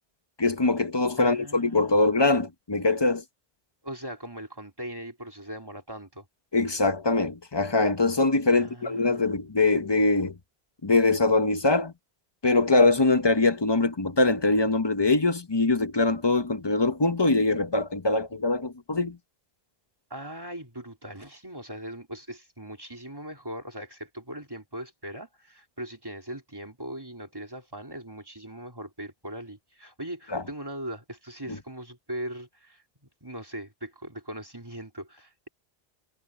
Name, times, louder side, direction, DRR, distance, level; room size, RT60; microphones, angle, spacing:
voice 1, 0.4-3.2 6.5-10.3 10.8-11.9 12.4-19.2 30.3-30.4, left 3 dB, 25° left, 0.9 m, -23 dB
voice 2, 1.2-2.0 3.8-6.3 8.5-9.3 20.1-32.8 33.2-35.5, right 1 dB, 20° right, 3.7 m, -40 dB
omnidirectional pair, 1.1 m